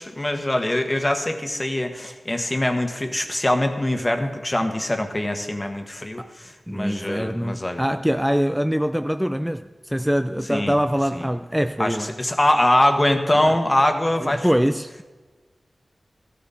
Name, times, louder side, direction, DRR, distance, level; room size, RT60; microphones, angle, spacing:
voice 1, 0.0-7.8 10.5-10.7 11.1-11.3 11.8-14.5, left 1 dB, 20° left, 1.4 m, -23 dB
voice 2, 6.7-12.1 13.3-13.6 14.2-15.0, equal, 5° right, 0.4 m, -24 dB
15.5 x 13.5 x 4.2 m
wide cardioid pair, 110°, 0 cm